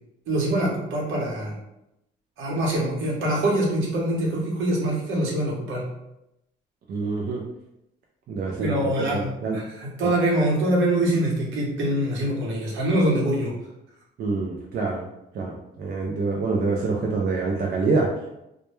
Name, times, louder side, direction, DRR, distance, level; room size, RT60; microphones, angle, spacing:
voice 1, 0.3-1.5 2.4-5.8 8.6-13.5, right 1 dB, 80° right, -3 dB, 0.9 m, -24 dB
voice 2, 6.9-7.4 8.3-9.6 14.2-15.0 15.3-18.1, right 3 dB, 55° right, -2 dB, 0.4 m, -26 dB
2.1 x 2.1 x 3.0 m, 0.86 s
cardioid pair, 90°, 20 cm